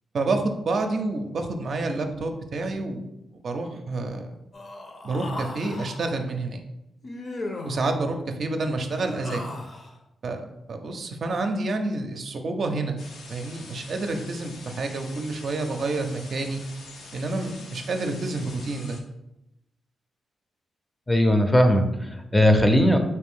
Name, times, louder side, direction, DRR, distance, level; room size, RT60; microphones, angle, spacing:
voice 1, 0.1-3.1 3.3-4.3 5.0-6.6 7.6-9.4 10.2-13.0 13.3-16.6 17.1-19.0, right 3 dB, 60° right, 4 dB, 0.5 m, -28 dB
Human voice, 4.5-6.0 7.0-7.9 8.8-9.9, left 2 dB, 50° left, 0.7 m, -37 dB
sound 1, 13.0-19.0, left 3 dB, 85° left, 0.6 m, -45 dB
voice 2, 21.1-23.0, equal, 15° left, 5 dB, 0.5 m, -19 dB
4.3 x 2.5 x 3.6 m, 0.89 s
cardioid pair, 80°, 0 cm